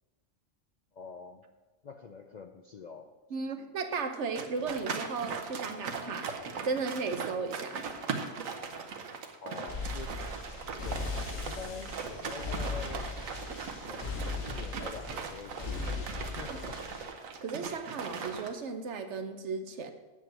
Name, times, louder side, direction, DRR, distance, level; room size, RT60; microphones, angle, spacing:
voice 1, 0.9-1.4 1.8-3.1 9.4-10.2 10.8-11.0 11.3-13.1 13.8-14.2 14.5-16.8, left 5 dB, 55° left, 5 dB, 0.5 m, -45 dB
voice 2, 3.3-6.3 6.6-7.8 16.5-16.6 17.4-19.9, right 4 dB, 65° right, 7 dB, 1.1 m, -35 dB
sound 1, 4.4-18.5, right 5 dB, 85° right, 1.3 m, -39 dB
sound 2, 9.7-17.1, left 3 dB, 85° left, 2.0 m, -38 dB
8.1 x 7.8 x 6.1 m, 1.3 s
omnidirectional pair, 1.4 m